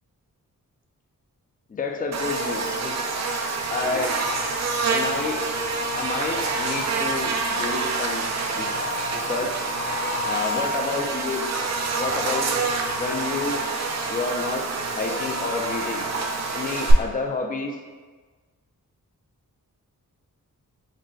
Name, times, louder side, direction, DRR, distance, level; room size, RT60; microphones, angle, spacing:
voice 1, 1.7-3.0 3.7-4.1 4.8-5.4 5.9-8.8 9.1-9.6 10.2-11.4 12.0-12.5 13.0-13.6 14.1-14.6 14.9-16.1 16.5-17.8, left 4 dB, 25° left, 2 dB, 0.4 m, -29 dB
Buzz, 2.1-16.9, right 3 dB, 50° right, 0.5 m, -27 dB
4.0 x 2.1 x 3.7 m, 1.4 s
cardioid pair, 65°, 34 cm